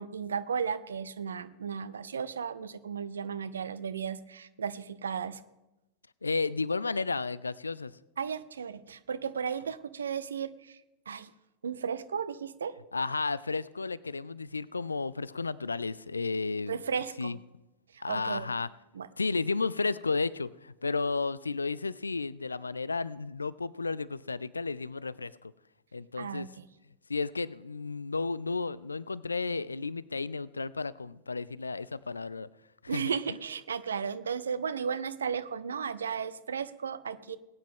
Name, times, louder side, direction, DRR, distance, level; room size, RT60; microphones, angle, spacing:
voice 1, 0.0-5.4 8.2-10.5 11.1-11.3 11.6-12.7 16.7-17.3 18.1-18.5 18.9-19.1 26.2-26.6 32.9-37.4, right 6 dB, 70° right, 14 dB, 0.6 m, -34 dB
voice 2, 6.2-7.9 12.9-16.8 17.2-17.4 18.0-18.7 19.2-25.5 25.9-26.5 27.1-32.5 32.8-33.4, left 4 dB, 80° left, 21 dB, 0.3 m, -33 dB
20.0 x 9.5 x 3.7 m, 0.95 s
figure-of-eight pair, 90°, 0 cm